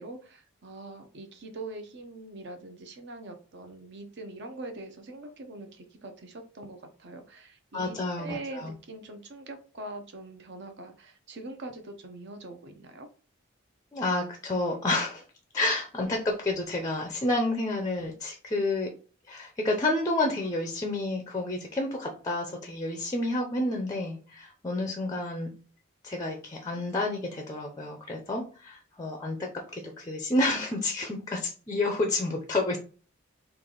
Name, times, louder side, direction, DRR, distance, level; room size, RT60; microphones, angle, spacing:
voice 1, 0.0-13.1, right 2 dB, 55° right, 6 dB, 0.7 m, -43 dB
voice 2, 7.7-8.7 13.9-15.2 15.5-18.9 19.3-25.5 26.0-32.8, left 2 dB, 15° left, 2 dB, 0.4 m, -30 dB
3.3 x 2.4 x 3.7 m, 0.38 s
head